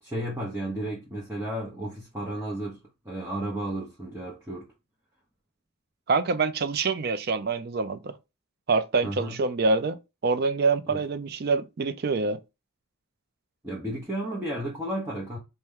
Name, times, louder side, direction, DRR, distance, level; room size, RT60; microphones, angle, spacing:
voice 1, 0.0-4.7 9.0-9.4 10.9-11.0 13.6-15.4, right 1 dB, 10° right, 0.7 m, -33 dB
voice 2, 6.1-8.2 8.7-12.4, right 4 dB, 45° right, 0.4 m, -26 dB
4.2 x 2.2 x 3.6 m
head